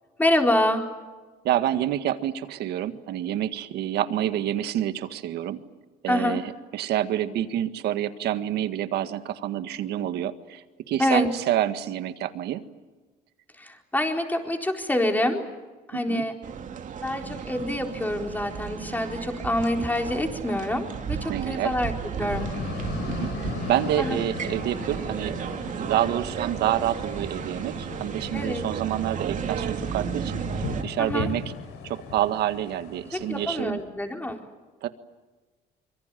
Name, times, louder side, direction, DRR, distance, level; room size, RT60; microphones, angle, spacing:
voice 1, 0.2-0.9 6.1-6.4 11.0-11.3 13.6-15.4 15.9-16.4 17.0-21.9 22.2-22.5 24.0-24.2 28.3-28.6 31.0-31.3 33.1-34.4, left 1 dB, 10° left, 3 dB, 4.3 m, -26 dB
voice 2, 1.4-5.6 6.0-12.6 15.9-16.3 19.8-19.9 21.3-21.7 23.1-25.4 25.7-31.4 31.8-33.8 34.8-34.9, right 12 dB, 75° right, 10 dB, 1.7 m, -28 dB
sound 1, 16.4-30.8, right 7 dB, 50° right, 2.4 m, -34 dB
sound 2, 22.3-33.6, left 5 dB, 85° left, 4.5 m, -37 dB
25.5 x 23.5 x 9.2 m, 1.3 s
cardioid pair, 110°, 17 cm